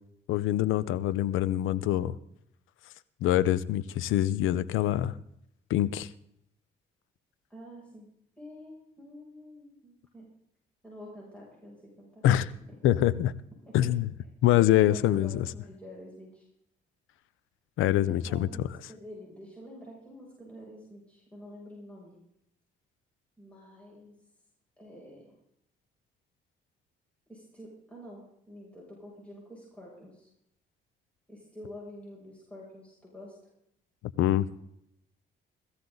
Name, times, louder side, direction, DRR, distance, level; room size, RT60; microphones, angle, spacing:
voice 1, 0.3-2.2 3.2-5.1 5.7-6.1 12.2-12.5 12.8-13.3 13.7-14.1 14.4-15.4 17.8-18.5 34.2-34.5, left 13 dB, 90° left, 17 dB, 0.7 m, -24 dB
voice 2, 7.5-8.1 8.4-10.3 10.8-12.2 13.6-13.9 14.8-16.4 17.9-22.1 23.4-24.1 24.8-25.3 27.3-30.3 31.3-33.4, left 1 dB, 5° left, -4 dB, 6.9 m, -47 dB
18.0 x 14.0 x 4.0 m, 0.76 s
cardioid pair, 90°, 20 cm